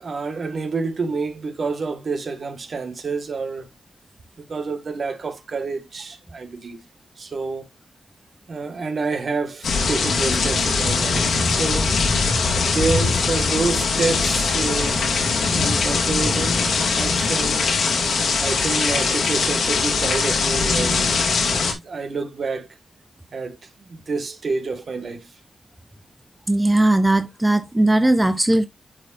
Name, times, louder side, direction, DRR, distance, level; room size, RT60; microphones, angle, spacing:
voice 1, 0.0-3.7 4.5-6.8 7.2-7.7 8.5-12.0 12.5-15.1 15.4-17.8 18.4-22.7 23.3-25.3, right 4 dB, 60° right, 1.6 m, -28 dB
sound 1, 9.6-21.7, left 4 dB, 80° left, 2.2 m, -21 dB
voice 2, 26.5-28.7, right 1 dB, 15° right, 0.7 m, -18 dB
10.5 x 4.7 x 2.5 m
cardioid pair, 70°, 0 cm